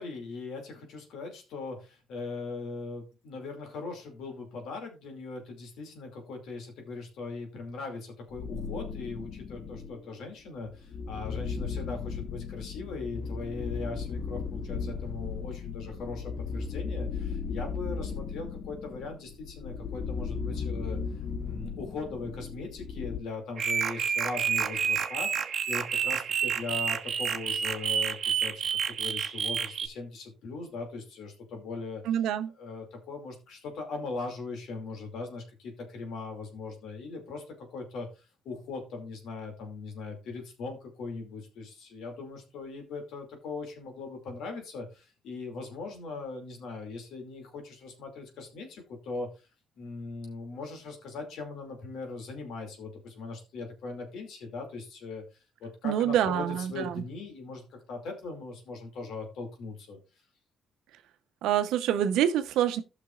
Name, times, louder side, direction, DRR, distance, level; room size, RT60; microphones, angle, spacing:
voice 1, 0.0-21.0 21.4-32.0 32.6-49.3 49.8-55.2 55.6-60.0, left 3 dB, 80° left, 2.4 m, -40 dB
sound 1, 8.3-10.0 10.6-23.2, left 5 dB, 50° left, 1.0 m, -36 dB
sound 2, 23.6-29.9, right 7 dB, 55° right, 0.9 m, -29 dB
voice 2, 32.1-32.5 55.8-57.0 61.4-62.8, right 10 dB, 90° right, 0.8 m, -26 dB
15.5 x 5.9 x 2.4 m
cardioid pair, 90°, 0 cm